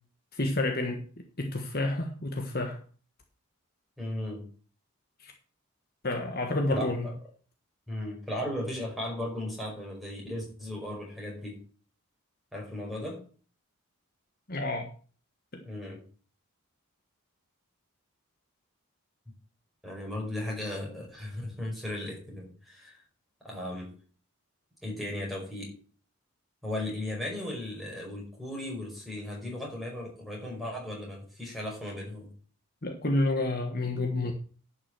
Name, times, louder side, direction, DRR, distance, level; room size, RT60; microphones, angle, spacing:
voice 1, 0.3-1.0 1.4-2.8 5.2-5.3 6.0-7.1 14.5-14.9 15.5-15.6 32.8-34.3, left 2 dB, 40° left, 4 dB, 1.4 m, -29 dB
voice 2, 4.0-4.5 6.7-7.1 7.9-11.6 12.5-13.2 15.6-16.0 19.8-23.0 23.4-23.9 24.8-25.7 26.6-32.3, left 1 dB, ahead, -2 dB, 5.1 m, -36 dB
11.0 x 6.1 x 7.7 m, 0.41 s
head